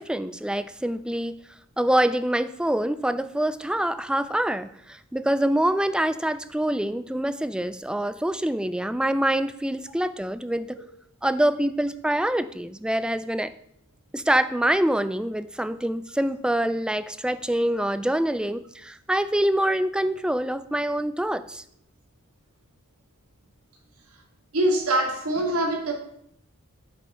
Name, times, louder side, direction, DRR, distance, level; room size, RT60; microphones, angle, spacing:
voice 1, 0.0-1.4 1.8-10.8 11.2-13.5 14.1-21.6, right 1 dB, 5° right, 13 dB, 0.3 m, -25 dB
voice 2, 24.5-25.9, right 1 dB, 80° right, 3 dB, 2.1 m, -23 dB
9.5 x 5.4 x 5.5 m, 0.72 s
head